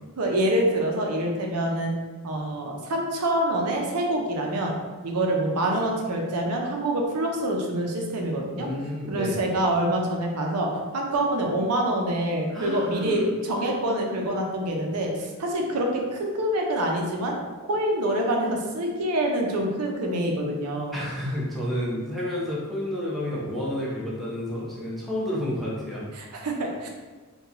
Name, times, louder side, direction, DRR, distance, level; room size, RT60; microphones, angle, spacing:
voice 1, 0.2-1.9 2.2-4.7 5.0-8.7 9.1-21.0 26.2-26.9, right 1 dB, 90° right, 1 dB, 0.5 m, -26 dB
voice 2, 8.5-9.4 12.5-13.3 20.9-26.1, left 1 dB, ahead, -7 dB, 0.7 m, -30 dB
2.8 x 2.3 x 3.8 m, 1.3 s
head